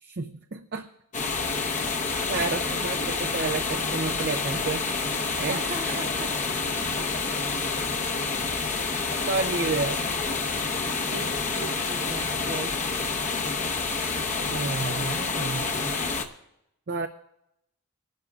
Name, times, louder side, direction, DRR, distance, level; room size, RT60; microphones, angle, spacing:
voice 1, 0.0-0.9 1.4-1.7 2.3-4.8 5.4-5.6 5.9-6.0 9.2-10.0 14.5-15.9 16.9-17.1, right 4 dB, 45° right, 6 dB, 0.5 m, -31 dB
sound 1, 1.1-16.2, left 4 dB, 35° left, 0.9 m, -28 dB
voice 2, 5.5-6.4 6.7-7.1 11.0-12.9, right 2 dB, 30° right, 2 dB, 1.1 m, -38 dB
25.0 x 12.0 x 2.4 m, 0.83 s
head